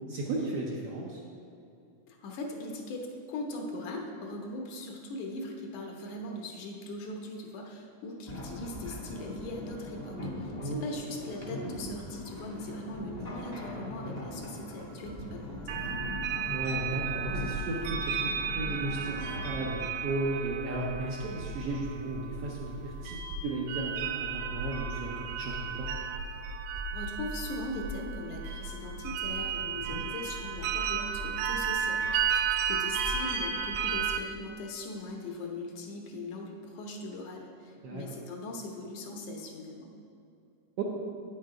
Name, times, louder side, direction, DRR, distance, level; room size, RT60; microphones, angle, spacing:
voice 1, 0.1-1.2 10.6-10.8 16.5-25.9 29.9-30.0 37.8-38.0 40.8-40.9, right 2 dB, 70° right, -3 dB, 1.5 m, -35 dB
voice 2, 2.1-15.8 26.9-39.9, left 2 dB, 75° left, 1 dB, 2.3 m, -40 dB
sound 1, 8.3-19.7, left 1 dB, 25° left, 0.9 m, -41 dB
sound 2, 15.7-34.2, right 6 dB, 85° right, 2.1 m, -33 dB
9.0 x 6.6 x 4.8 m, 2.6 s
omnidirectional pair, 3.5 m